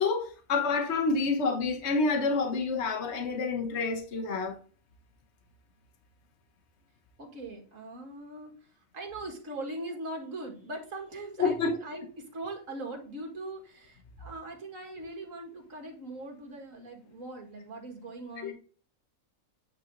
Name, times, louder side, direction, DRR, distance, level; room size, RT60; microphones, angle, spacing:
voice 1, 0.0-4.6 11.4-11.7 18.4-18.5, left 4 dB, 55° left, 1.3 m, -28 dB
voice 2, 7.2-18.5, right 2 dB, 70° right, 2.2 m, -41 dB
8.9 x 3.9 x 3.8 m
omnidirectional pair, 1.4 m